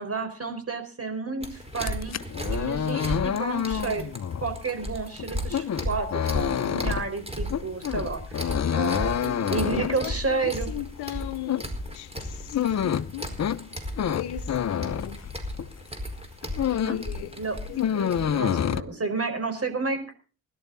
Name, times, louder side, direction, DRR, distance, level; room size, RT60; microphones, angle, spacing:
voice 1, 0.0-2.1 2.5-4.1 4.4-8.4 8.7-10.7 14.8-15.0 16.8-17.0 17.4-20.1, right 4 dB, 35° right, 4.9 m, -31 dB
sound 1, 1.4-18.3, equal, 15° right, 4.8 m, -36 dB
sound 2, 1.7-15.8 16.2-17.1 17.4-18.8, left 8 dB, 40° left, 0.9 m, -28 dB
voice 2, 9.7-13.3 14.1-15.3 16.7-17.4 17.7-18.3, left 13 dB, 70° left, 1.0 m, -37 dB
20.5 x 12.0 x 4.1 m
hypercardioid pair, 40°, 41 cm